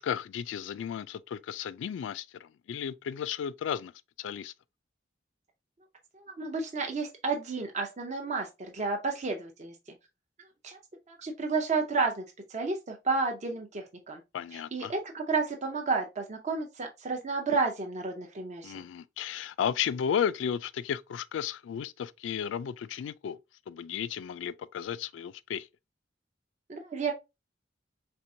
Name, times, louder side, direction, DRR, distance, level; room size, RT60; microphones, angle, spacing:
voice 1, 0.0-3.9 4.2-4.5 14.3-14.9 18.6-23.4 23.7-25.7, left 8 dB, 75° left, 0.3 m, -34 dB
voice 2, 6.1-9.7 10.6-10.8 11.1-12.2 12.5-14.2 14.5-18.8 26.7-27.1, right 4 dB, 40° right, 0.6 m, -31 dB
4.4 x 3.5 x 2.6 m
head